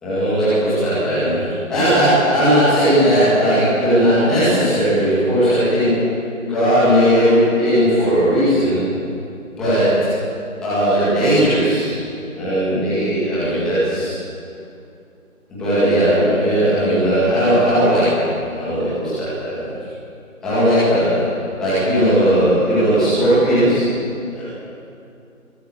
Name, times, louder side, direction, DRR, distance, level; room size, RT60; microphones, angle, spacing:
voice 1, 0.0-6.0 6.4-8.8 9.6-10.1 10.6-11.9 12.3-14.2 15.5-18.3 18.6-19.6 20.4-23.8 24.3-24.5, equal, ahead, -13 dB, 2.0 m, -17 dB
23.0 x 17.5 x 8.3 m, 2.6 s
figure-of-eight pair, 165°, 43 cm